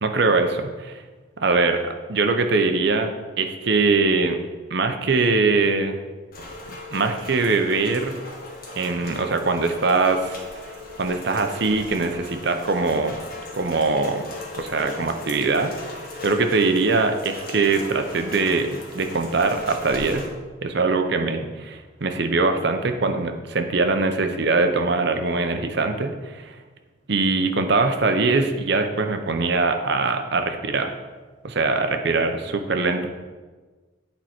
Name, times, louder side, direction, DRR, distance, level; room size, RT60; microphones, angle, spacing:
voice 1, 0.0-1.0 1.4-3.1 3.4-4.4 4.7-6.0 6.9-8.1 8.8-10.4 11.0-13.2 13.5-14.3 14.5-20.3 20.6-26.6 27.1-31.0 31.4-33.1, right 3 dB, 55° right, 6 dB, 0.7 m, -22 dB
Rain, 6.3-20.3, left 2 dB, 45° left, 1.2 m, -38 dB
8.7 x 4.5 x 4.4 m, 1.3 s
head